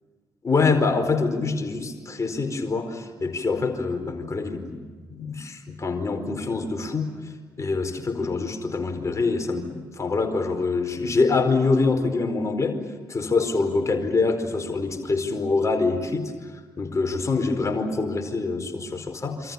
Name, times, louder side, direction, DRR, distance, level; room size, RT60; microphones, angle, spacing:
voice 1, 0.4-4.8 5.1-7.1 7.6-12.8 13.1-16.5 16.8-19.5, left 3 dB, 30° left, 5 dB, 4.7 m, -25 dB
27.5 x 26.5 x 7.1 m, 1.5 s
figure-of-eight pair, 45°, 11 cm